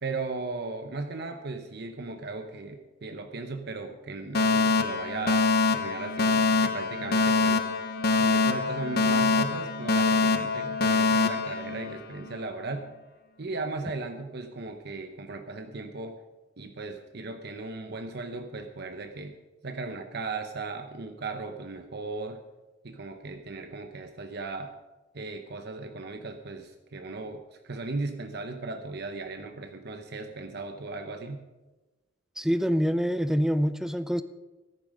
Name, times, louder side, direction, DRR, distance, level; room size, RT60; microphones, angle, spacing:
voice 1, 0.0-5.4 5.7-7.6 8.2-12.9 13.4-16.2 16.6-19.3 19.6-22.4 22.8-24.7 25.1-31.4, right 3 dB, 55° right, 6 dB, 0.9 m, -37 dB
Alarm, 4.3-12.4, left 3 dB, 55° left, 0.9 m, -25 dB
voice 2, 32.4-34.2, equal, 5° right, 12 dB, 0.5 m, -25 dB
14.0 x 11.0 x 5.3 m, 1.1 s
head